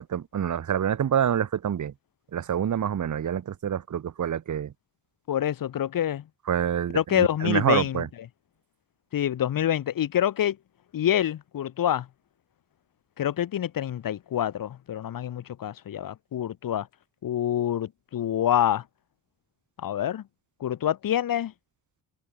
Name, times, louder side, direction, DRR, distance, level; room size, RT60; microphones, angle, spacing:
voice 1, 0.0-1.9 2.3-4.7 6.5-8.1, right 9 dB, 50° right, 1.5 m, -27 dB
voice 2, 5.3-6.2 6.9-8.0 9.1-10.6 10.9-12.1 13.2-16.9 17.2-18.8 19.8-20.2 20.6-21.5, left 10 dB, 60° left, 1.7 m, -26 dB
hypercardioid pair, 50°, 38 cm